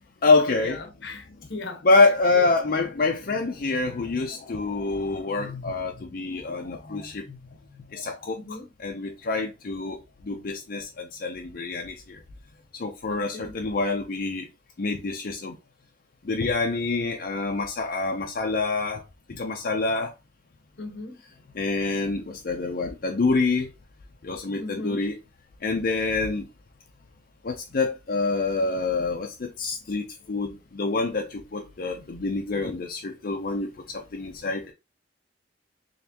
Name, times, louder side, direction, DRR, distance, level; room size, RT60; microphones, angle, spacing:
voice 1, 0.2-0.8 1.8-7.4 7.7-12.2 12.7-14.5 14.8-15.5 16.2-20.1 21.5-23.7 24.2-25.2 25.6-26.5 27.4-34.7, left 3 dB, 55° left, 0.5 m, -26 dB
voice 2, 1.0-1.8 2.3-2.5 8.3-8.7 13.0-13.5 20.8-21.2 24.6-25.0, left 2 dB, 75° left, 1.0 m, -37 dB
4.0 x 3.4 x 2.8 m
head